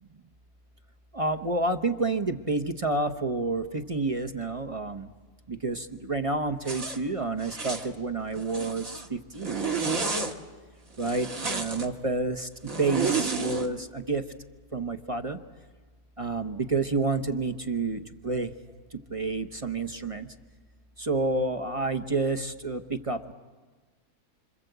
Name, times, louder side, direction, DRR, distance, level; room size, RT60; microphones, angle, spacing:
voice 1, 1.1-5.1 5.5-10.1 11.0-14.2 14.7-15.4 16.2-18.5 18.9-20.3 21.0-23.3, right 3 dB, 30° right, 8 dB, 0.8 m, -29 dB
Zipper (clothing), 6.6-7.0 7.4-7.9 8.4-9.1 9.4-10.3 11.0-11.9 12.7-13.7, right 4 dB, 60° right, 2.0 m, -31 dB
27.0 x 26.5 x 8.0 m, 1.3 s
omnidirectional pair, 1.7 m